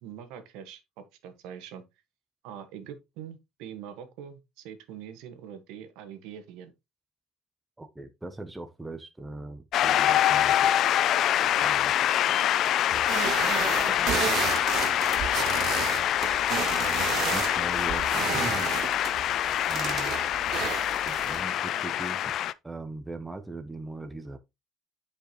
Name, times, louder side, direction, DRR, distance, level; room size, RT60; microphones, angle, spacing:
voice 1, 0.0-1.8 2.4-6.7 13.4-14.5 14.8-15.4, right 8 dB, 75° right, 1.4 m, -44 dB
voice 2, 7.8-10.9 11.4-12.1 17.3-18.0 18.3-18.7 19.7-20.2 21.0-22.4 22.6-24.4, right 2 dB, 5° right, 0.6 m, -39 dB
Shout / Cheering / Applause, 9.7-22.5, left 11 dB, 40° left, 0.3 m, -25 dB
sound 1, 12.9-21.4, right 10 dB, 40° right, 0.4 m, -32 dB
9.2 x 5.1 x 3.0 m
cardioid pair, 175°, 0 cm